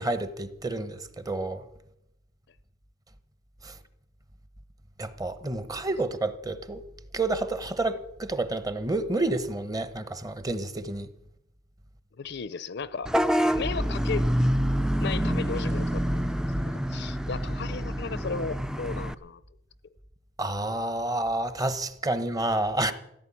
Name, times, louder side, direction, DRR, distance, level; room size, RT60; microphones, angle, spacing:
voice 1, 0.0-1.6 3.6-3.7 5.0-6.8 7.1-11.1 20.4-22.9, right 2 dB, 20° right, 0.9 m, -29 dB
voice 2, 12.2-13.1 13.5-14.5 15.0-19.4, left 5 dB, 60° left, 0.6 m, -35 dB
Vehicle horn car horn honking / Bus, 13.1-19.1, equal, 5° right, 0.5 m, -27 dB
15.5 x 9.8 x 8.6 m
head